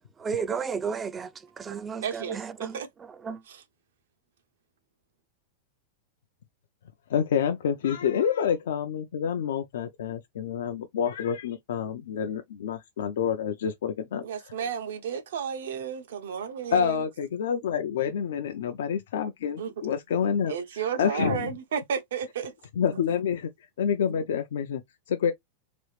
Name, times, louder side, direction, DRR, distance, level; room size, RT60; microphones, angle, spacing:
voice 1, 0.2-3.4, right 6 dB, 20° right, 0.3 m, -33 dB
voice 2, 2.0-2.9 3.5-3.6 14.2-17.0 19.6-19.7 20.5-22.5 23.1-23.2 24.1-24.2, right 7 dB, 80° right, 0.8 m, -32 dB
voice 3, 7.1-14.2 16.7-20.5 21.0-21.5 22.8-23.5 23.8-24.8 25.1-25.3, left 8 dB, 80° left, 0.5 m, -28 dB
3.0 x 2.4 x 3.1 m
supercardioid pair, 135°, 0 cm